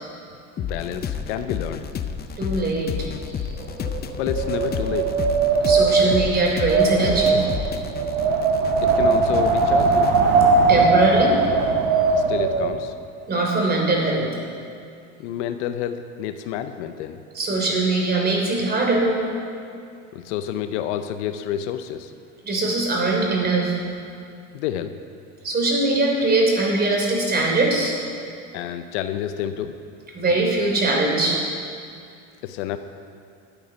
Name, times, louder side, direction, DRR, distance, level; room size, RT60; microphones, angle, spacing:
voice 1, 0.6-1.9 4.2-5.2 7.3-7.4 8.8-10.2 12.2-12.9 15.2-17.2 20.1-22.1 24.5-25.0 28.5-29.8 32.4-32.8, left 10 dB, 65° left, 9 dB, 0.7 m, -29 dB
sound 1, 0.6-10.2, left 7 dB, 25° left, 0.7 m, -31 dB
voice 2, 2.4-3.1 5.6-7.4 10.7-11.4 13.3-14.3 17.3-19.2 22.4-23.8 25.4-28.0 30.1-31.5, right 2 dB, 25° right, -1 dB, 3.3 m, -21 dB
Wind, 3.6-12.8, right 4 dB, 70° right, 1.6 m, -20 dB
12.0 x 8.6 x 5.1 m, 2.4 s
hypercardioid pair, 85°, 37 cm